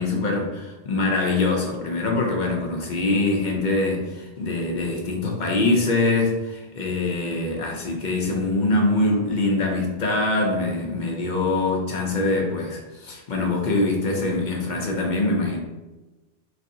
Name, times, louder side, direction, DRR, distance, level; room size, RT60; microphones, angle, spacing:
voice 1, 0.0-15.6, left 2 dB, 55° left, 0 dB, 0.6 m, -24 dB
3.2 x 2.6 x 2.6 m, 1.1 s
omnidirectional pair, 1.1 m